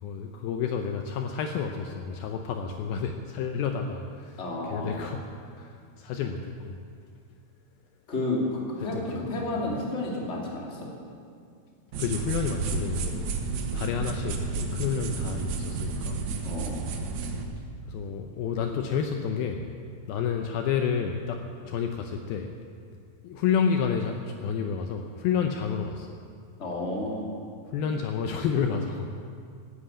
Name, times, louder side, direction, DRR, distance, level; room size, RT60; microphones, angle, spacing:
voice 1, 0.0-4.4 4.7-5.3 5.6-6.8 8.9-9.8 12.0-13.3 13.7-16.2 17.9-19.6 20.1-21.4 21.7-22.5 23.2-26.2 27.7-29.2, left 6 dB, 75° left, 4 dB, 2.4 m, -30 dB
voice 2, 4.4-5.1 8.1-10.9 16.4-16.8 26.6-27.3, left 2 dB, 20° left, -3 dB, 2.1 m, -31 dB
sound 1, 11.9-17.4, right 4 dB, 70° right, 1.8 m, -31 dB
14.0 x 10.0 x 8.7 m, 2.3 s
omnidirectional pair, 4.7 m